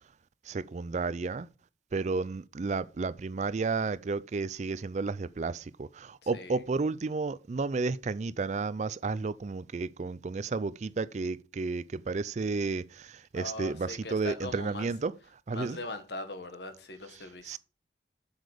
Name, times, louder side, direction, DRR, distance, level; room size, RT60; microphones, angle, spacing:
voice 1, 0.5-1.5 1.9-15.1 15.5-15.8 17.5-17.6, right 4 dB, 40° right, 0.4 m, -32 dB
voice 2, 6.2-6.6 13.3-14.9 15.5-17.6, left 2 dB, 65° left, 1.6 m, -41 dB
7.7 x 7.1 x 5.0 m
head